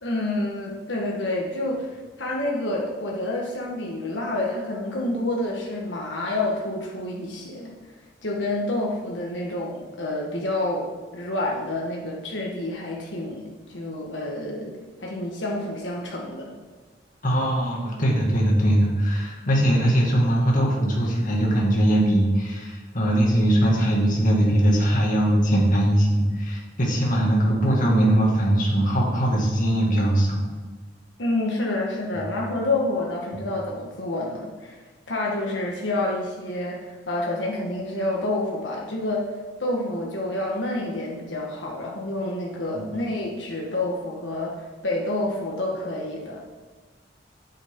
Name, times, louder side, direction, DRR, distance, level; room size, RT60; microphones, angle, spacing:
voice 1, 0.0-1.9 2.2-7.7 8.2-16.5 31.2-34.8 35.1-39.2 39.6-46.5, left 2 dB, 85° left, -2 dB, 1.4 m, -28 dB
voice 2, 17.2-30.4 32.1-32.3 42.7-42.9, right 1 dB, 45° left, -2 dB, 2.0 m, -21 dB
9.1 x 8.3 x 3.7 m, 1.4 s
head